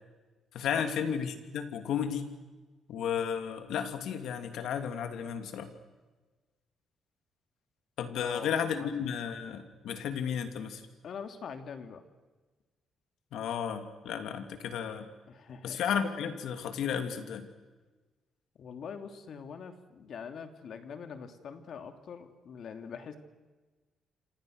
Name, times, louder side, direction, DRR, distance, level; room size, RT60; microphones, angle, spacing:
voice 1, 0.5-2.3 2.9-5.7 8.0-10.8 13.3-15.1 15.6-17.5, left 7 dB, 80° left, 7 dB, 3.0 m, -33 dB
voice 2, 8.2-8.5 8.8-9.1 11.0-12.0 15.3-15.8 18.5-23.2, left 6 dB, 60° left, 7 dB, 2.8 m, -43 dB
27.5 x 27.0 x 6.6 m, 1.3 s
cardioid pair, 90°, 0 cm